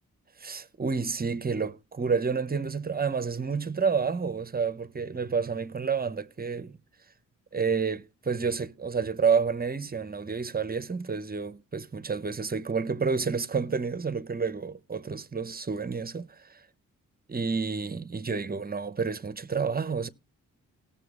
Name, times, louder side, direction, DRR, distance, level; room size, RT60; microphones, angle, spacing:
voice 1, 0.4-6.7 7.5-16.3 17.3-20.1, right 5 dB, 25° right, 0.7 m, -29 dB
18.5 x 7.0 x 2.4 m
supercardioid pair, 45°, 35 cm